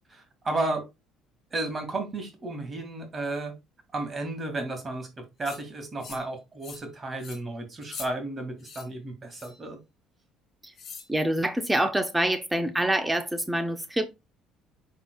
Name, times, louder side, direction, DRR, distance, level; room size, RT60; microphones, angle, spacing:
voice 1, 0.1-0.8 1.5-3.5 3.9-5.1 5.4-9.8, right 2 dB, 30° right, 2.1 m, -33 dB
sound 1, 5.4-5.6 6.0-6.3 6.6-6.9 7.2-7.4 7.8-8.1 8.6-8.9 9.3-9.6 10.8-11.1, left 5 dB, 50° left, 2.2 m, -43 dB
voice 2, 11.1-14.1, right 1 dB, 10° right, 0.7 m, -26 dB
11.0 x 3.8 x 2.3 m
cardioid pair, 100°, 0 cm